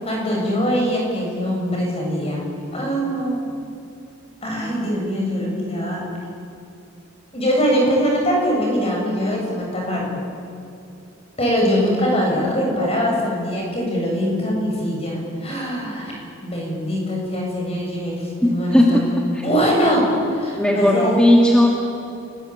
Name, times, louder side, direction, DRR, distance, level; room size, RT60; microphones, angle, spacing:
voice 1, 0.0-2.4 2.7-3.6 4.4-6.0 7.3-10.2 11.4-18.2 18.4-21.2, equal, 30° left, -1 dB, 7.7 m, -22 dB
voice 2, 18.4-19.0 19.3-19.5 20.6-21.7, left 1 dB, 5° left, -1 dB, 2.1 m, -16 dB
29.5 x 20.0 x 8.8 m, 2.7 s
head